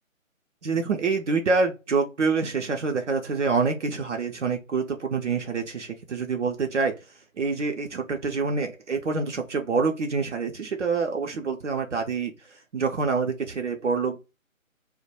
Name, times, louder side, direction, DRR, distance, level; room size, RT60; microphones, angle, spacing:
voice 1, 0.6-7.0 7.4-14.2, right 4 dB, 60° right, 3 dB, 0.5 m, -26 dB
2.2 x 2.1 x 2.7 m, 0.28 s
figure-of-eight pair, 150°, 41 cm